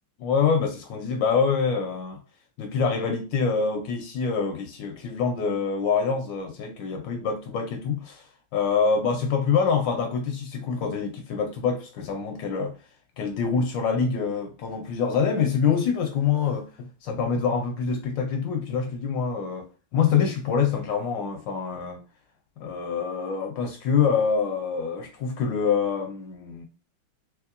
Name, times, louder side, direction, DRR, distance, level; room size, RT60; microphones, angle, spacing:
voice 1, 0.2-2.2 2.6-8.3 8.5-12.8 13.2-22.0 22.6-26.7, left 6 dB, 75° left, 1.2 m, -25 dB
3.5 x 3.1 x 2.4 m
omnidirectional pair, 2.3 m